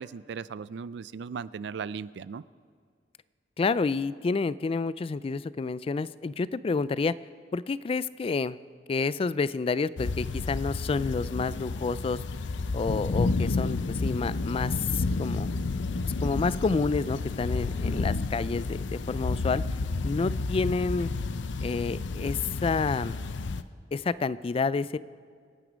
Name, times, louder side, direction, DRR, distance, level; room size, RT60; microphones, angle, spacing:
voice 1, 0.0-2.4, right 6 dB, 70° right, 18 dB, 0.4 m, -37 dB
voice 2, 3.6-7.1 7.5-8.6 8.9-12.2 12.7-15.5 16.2-19.6 20.0-21.1 21.6-23.1 23.9-25.0, left 4 dB, 30° left, 18 dB, 0.3 m, -29 dB
sound 1, 10.0-23.6, left 3 dB, 85° left, 0.6 m, -31 dB
25.0 x 9.3 x 5.1 m, 2.1 s
head